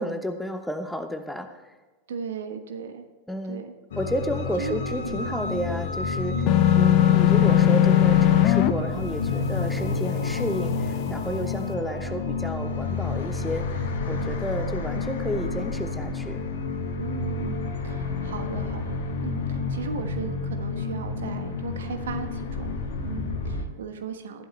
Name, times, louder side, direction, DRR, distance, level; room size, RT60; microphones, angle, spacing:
voice 1, 0.0-1.7 3.3-3.6 4.0-6.5 6.8-16.4, equal, ahead, 7 dB, 1.0 m, -31 dB
voice 2, 2.1-3.0 3.5-3.7 4.6-5.3 6.3-6.7 17.0-24.5, right 6 dB, 60° right, 7 dB, 1.2 m, -37 dB
sound 1, 3.9-23.7, left 4 dB, 60° left, 1.4 m, -29 dB
sound 2, 6.5-8.7, left 12 dB, 40° left, 0.7 m, -18 dB
14.0 x 12.0 x 3.2 m, 1.3 s
figure-of-eight pair, 90°, 0 cm